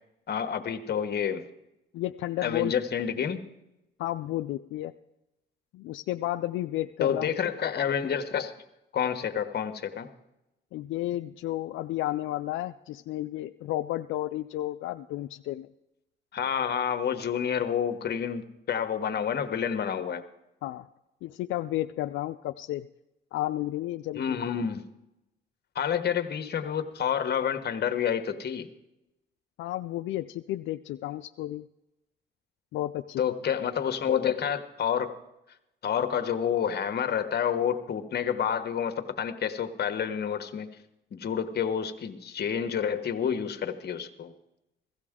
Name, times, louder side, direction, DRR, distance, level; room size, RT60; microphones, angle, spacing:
voice 1, 0.3-1.5 2.4-3.5 7.0-8.5 8.9-10.1 16.3-20.2 24.1-24.8 25.7-28.7 33.2-35.2 35.8-40.7 41.1-44.3, left 8 dB, 55° left, 8 dB, 1.3 m, -29 dB
voice 2, 1.9-2.7 4.0-4.9 5.7-7.3 10.7-15.7 20.6-20.9 21.2-22.9 23.3-24.4 29.6-31.6 32.7-33.2, left 15 dB, 85° left, 8 dB, 0.4 m, -32 dB
16.5 x 14.5 x 3.7 m, 0.90 s
cardioid pair, 90°, 20 cm